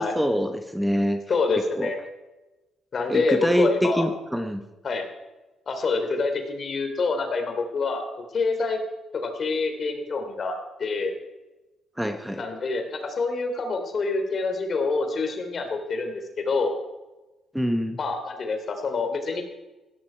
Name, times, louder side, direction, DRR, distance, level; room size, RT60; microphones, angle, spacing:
voice 1, 0.0-1.2 1.8-1.9 3.1-4.6 12.0-12.4 17.5-18.0, equal, 5° right, 7 dB, 1.1 m, -25 dB
voice 2, 1.3-2.0 2.9-4.1 4.8-5.0 5.7-8.1 8.3-8.8 9.1-11.1 12.3-16.7 18.0-19.4, left 3 dB, 50° left, 5 dB, 3.1 m, -26 dB
16.0 x 13.0 x 4.5 m, 1.1 s
cardioid pair, 90°, 0 cm